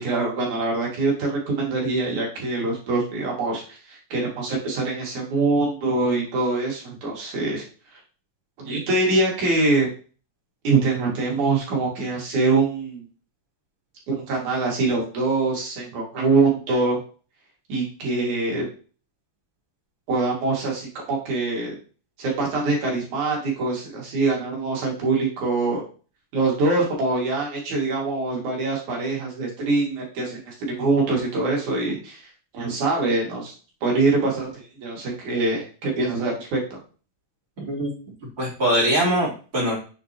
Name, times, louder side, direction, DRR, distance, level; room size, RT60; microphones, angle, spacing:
voice 1, 0.0-7.6 8.6-9.9 10.6-13.0 14.1-17.0 17.7-18.6 20.1-21.7 22.2-25.8 26.3-32.2 32.5-33.5 33.8-36.8, right 3 dB, 50° right, -2 dB, 3.1 m, -24 dB
voice 2, 37.6-37.9 38.4-39.7, right 1 dB, 25° right, -6 dB, 3.3 m, -22 dB
7.1 x 6.5 x 2.9 m, 0.37 s
omnidirectional pair, 5.0 m